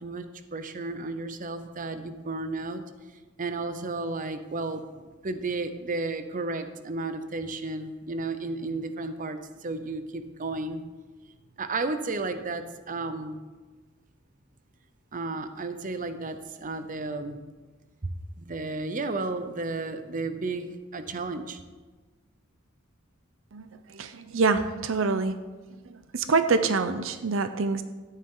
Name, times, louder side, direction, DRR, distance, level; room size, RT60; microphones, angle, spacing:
voice 1, 0.0-2.8 3.4-10.8 11.6-13.4 15.1-17.4 18.4-21.6, right 3 dB, 40° right, 9 dB, 0.7 m, -33 dB
voice 2, 23.5-25.4 25.9-27.8, right 4 dB, 70° right, 10 dB, 0.6 m, -26 dB
13.5 x 10.0 x 3.8 m, 1.3 s
head